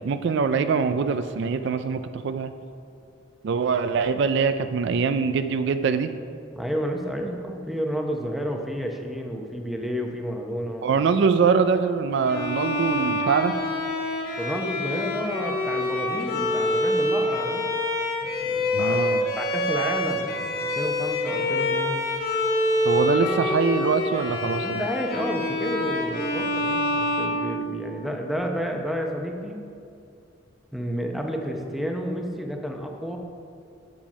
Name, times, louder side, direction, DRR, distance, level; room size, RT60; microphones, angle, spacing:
voice 1, 0.0-2.5 3.4-6.1 10.8-13.5 18.7-19.3 22.8-24.8, right 5 dB, 65° right, 10 dB, 0.4 m, -23 dB
voice 2, 6.5-11.0 14.4-17.6 18.2-20.5 20.8-22.0 24.6-29.6 30.7-33.2, equal, ahead, 2 dB, 0.7 m, -31 dB
Bowed string instrument, 12.3-28.1, left 1 dB, 50° left, 1.2 m, -26 dB
7.4 x 7.2 x 5.3 m, 2.5 s
head